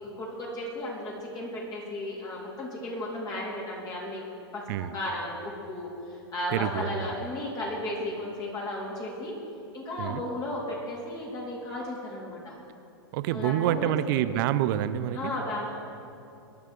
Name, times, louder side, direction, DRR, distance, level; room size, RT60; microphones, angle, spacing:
voice 1, 0.2-4.2 4.5-9.3 9.7-12.5 13.3-13.9 15.1-15.7, left 1 dB, 25° left, -4 dB, 3.7 m, -34 dB
voice 2, 6.5-7.1 10.0-10.2 13.1-15.3, right 12 dB, 50° right, 14 dB, 0.7 m, -27 dB
21.5 x 11.0 x 4.6 m, 2.7 s
hypercardioid pair, 110°, 14 cm